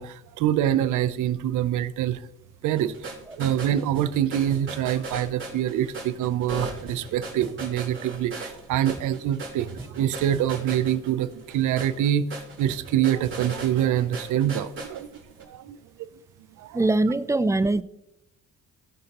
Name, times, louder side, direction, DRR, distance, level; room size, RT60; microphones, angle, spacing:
voice 1, 0.0-2.2 2.6-15.1 15.4-15.8 16.6-16.8, right 11 dB, 80° right, 0.6 m, -25 dB
sound 1, 2.7-15.4, right 3 dB, 40° right, 3.7 m, -38 dB
voice 2, 16.7-17.8, right 2 dB, 10° right, 0.4 m, -22 dB
17.0 x 6.6 x 2.9 m
cardioid pair, 90°, 30 cm